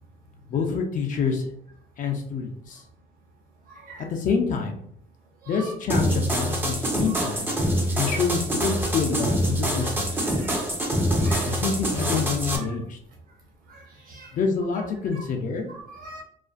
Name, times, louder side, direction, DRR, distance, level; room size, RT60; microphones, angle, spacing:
voice 1, 0.5-1.5 2.0-2.8 4.0-4.8 5.5-7.5 8.0-10.7 11.4-13.0 14.3-15.7, left 5 dB, 50° left, 3 dB, 0.4 m, -27 dB
voice 2, 3.7-4.0 5.4-5.7 7.1-7.3 7.9-8.1 9.8-10.5 11.2-11.6 12.5-12.8 13.7-14.3 14.7-14.9 15.1-15.3 15.7-16.2, right 3 dB, 60° right, -1 dB, 0.8 m, -43 dB
sound 1, 5.9-12.6, equal, 10° right, 0.4 m, -25 dB
2.4 x 2.1 x 2.4 m, 0.66 s
cardioid pair, 110°, 17 cm